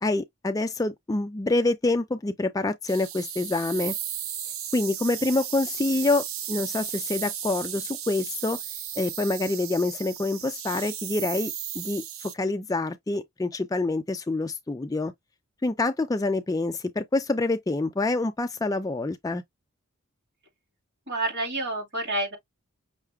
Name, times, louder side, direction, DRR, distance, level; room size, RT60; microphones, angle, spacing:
voice 1, 0.0-3.9 4.7-8.6 9.0-15.1 15.6-19.4, left 2 dB, 15° left, 0.3 m, -26 dB
sound 1, 2.9-12.3, right 9 dB, 70° right, 0.6 m, -35 dB
voice 2, 21.1-22.4, right 2 dB, 50° right, 2.4 m, -28 dB
5.7 x 2.0 x 3.4 m
head